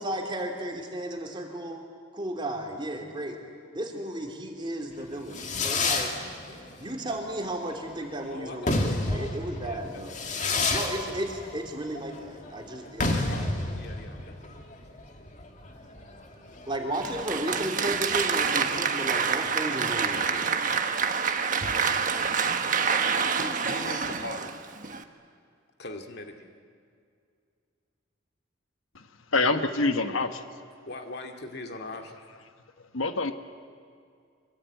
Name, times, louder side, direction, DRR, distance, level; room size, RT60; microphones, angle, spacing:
voice 1, 0.0-1.9 2.1-3.4 3.7-6.1 6.8-10.1 10.7-13.5 16.7-20.8, right 1 dB, 25° right, 2 dB, 3.0 m, -34 dB
Fireworks, 5.0-17.2, left 2 dB, 35° left, 2.3 m, -31 dB
voice 2, 8.3-10.5 13.3-15.4 23.4-24.5 25.8-26.6 30.8-32.3, left 2 dB, 50° left, 4 dB, 2.2 m, -42 dB
Applause, 16.9-25.0, right 6 dB, 40° right, 1.3 m, -27 dB
voice 3, 29.3-30.4 32.9-33.3, left 3 dB, 85° left, 8 dB, 1.3 m, -25 dB
25.0 x 23.0 x 9.3 m, 2.3 s
head